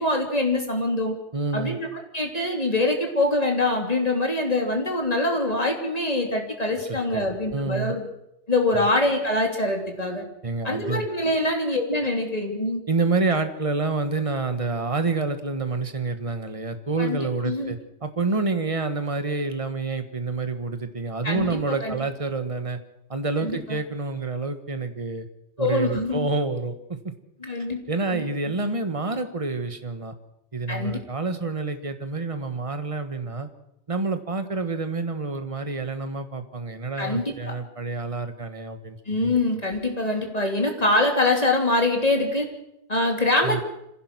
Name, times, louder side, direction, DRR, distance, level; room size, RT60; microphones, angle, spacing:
voice 1, 0.0-1.1 1.5-1.9 2.1-8.1 8.5-10.2 10.6-12.8 17.0-17.7 21.2-21.9 23.4-23.8 25.6-26.3 27.4-27.8 28.1-28.3 30.7-31.0 37.0-37.5 39.1-42.5 42.9-43.6, left 2 dB, 35° left, 2 dB, 3.3 m, -24 dB
voice 2, 1.3-1.8 7.1-7.9 8.7-8.9 10.4-11.0 12.9-22.8 23.1-25.3 25.6-27.1 27.9-30.1 30.5-33.5 33.9-39.0 43.4-43.6, right 3 dB, 30° right, 8 dB, 1.6 m, -28 dB
25.5 x 16.5 x 6.2 m, 0.83 s
omnidirectional pair, 1.1 m